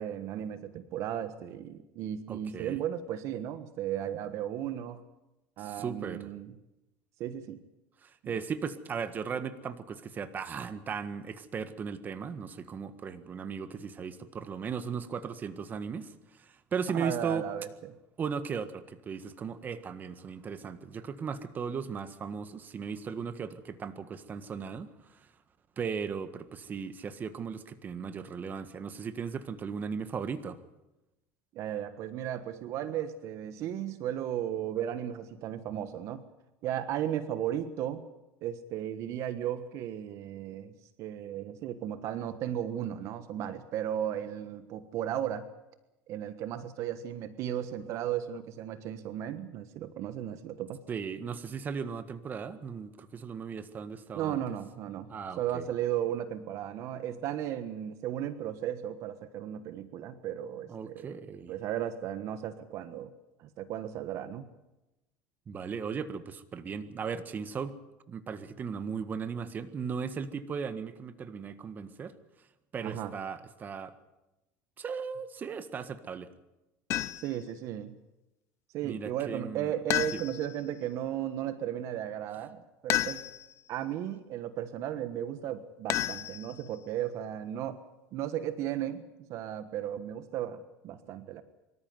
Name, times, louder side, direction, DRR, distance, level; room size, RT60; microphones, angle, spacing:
voice 1, 0.0-5.0 5.6-6.5 7.2-7.6 8.2-8.3 16.9-17.7 31.5-36.2 36.6-38.0 38.4-40.7 41.0-45.5 46.1-50.8 54.1-63.1 63.4-64.5 72.8-73.1 77.2-78.0 78.7-83.2 83.7-87.8 88.1-91.4, right 11 dB, 60° right, 12 dB, 1.3 m, -35 dB
voice 2, 2.3-2.8 5.6-6.3 8.0-17.5 18.2-25.3 25.8-30.6 50.9-54.4 55.1-55.7 60.7-61.5 65.5-67.8 68.1-72.2 72.7-73.9 74.8-76.3 78.8-79.7 80.1-80.2, right 6 dB, 30° right, 11 dB, 1.6 m, -37 dB
sound 1, 76.9-77.4 79.9-80.6 82.9-83.6 85.9-86.8, left 13 dB, 50° left, 0.7 m, -32 dB
24.5 x 13.5 x 9.6 m, 0.97 s
supercardioid pair, 115°, 6 cm